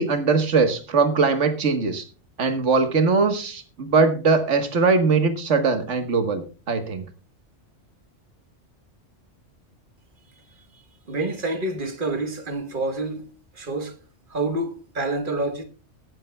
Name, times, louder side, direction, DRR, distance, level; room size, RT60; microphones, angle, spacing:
voice 1, 0.0-2.0 2.4-7.0, right 4 dB, 75° right, 1.7 m, -21 dB
voice 2, 11.1-14.0 14.3-15.6, right 2 dB, 45° right, 1.5 m, -28 dB
21.0 x 9.4 x 2.3 m
omnidirectional pair, 1.2 m